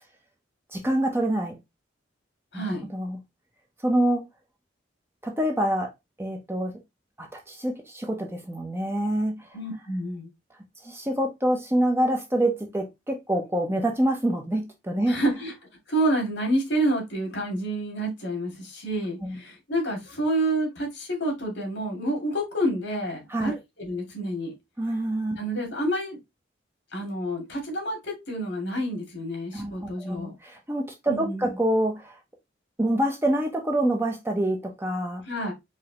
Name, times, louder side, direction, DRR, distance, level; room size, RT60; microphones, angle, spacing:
voice 1, 0.7-1.6 2.5-2.6 2.9-3.2 3.8-4.2 5.2-5.9 6.2-6.7 7.2-9.5 10.8-15.2 19.2-19.4 23.3-23.6 24.8-25.4 29.5-32.2 32.8-35.2, right 1 dB, 10° right, 0.6 m, -26 dB
voice 2, 2.5-2.8 9.5-10.3 15.1-15.5 15.9-24.5 25.4-26.2 26.9-30.3 31.1-31.5 35.3-35.5, right 1 dB, 70° left, 2.1 m, -28 dB
4.9 x 2.7 x 2.8 m
head